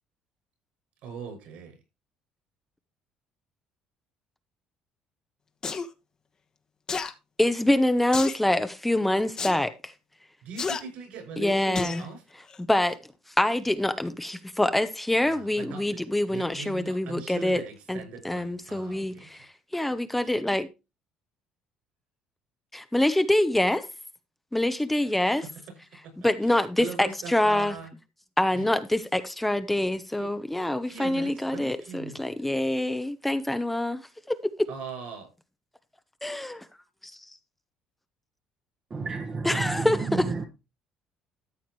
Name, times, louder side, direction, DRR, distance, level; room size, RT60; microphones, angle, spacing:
voice 1, 1.0-1.7 10.4-12.2 15.3-15.8 16.3-19.3 26.8-27.9 28.5-28.7 30.2-30.3 30.8-32.2 34.7-35.3, right 5 dB, 70° right, 6.3 m, -40 dB
sound 1, 5.6-5.9 6.9-7.1 8.1-8.4 9.4-9.6 10.6-10.8 11.7-12.0 12.5-12.6, left 5 dB, 35° left, 1.3 m, -31 dB
voice 2, 7.4-9.9 11.4-12.1 12.6-13.0 13.4-20.7 22.7-23.9 24.5-25.5 26.2-27.8 28.4-34.0 34.3-34.7 36.2-36.6 39.4-40.3, left 1 dB, 5° left, 0.8 m, -25 dB
voice 3, 38.9-39.9 40.4-40.5, right 4 dB, 30° right, 1.2 m, -31 dB
13.5 x 7.1 x 3.1 m
cardioid pair, 110°, 2 cm